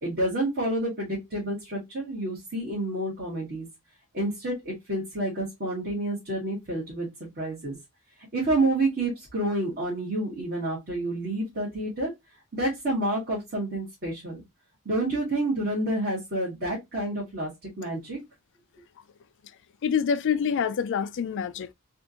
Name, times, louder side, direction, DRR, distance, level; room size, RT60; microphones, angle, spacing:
voice 1, 0.0-3.7 4.1-7.1 7.4-7.8 8.3-12.1 12.5-14.4 14.9-17.5 17.8-18.2, right 1 dB, 50° right, 1.7 m, -29 dB
voice 2, 19.8-21.7, left 7 dB, 60° left, 0.4 m, -26 dB
3.5 x 2.5 x 2.8 m
head